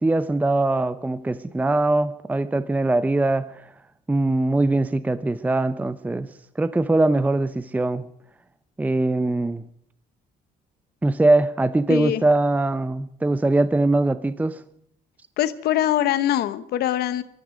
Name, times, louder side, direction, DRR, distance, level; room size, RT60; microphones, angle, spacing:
voice 1, 0.0-3.6 4.1-6.3 6.6-8.1 8.8-9.6 11.0-14.6, right 2 dB, 10° right, 14 dB, 0.6 m, -22 dB
voice 2, 11.9-12.2 15.4-17.2, left 12 dB, 70° left, 13 dB, 1.0 m, -23 dB
20.5 x 13.5 x 5.2 m, 0.69 s
cardioid pair, 110°, 17 cm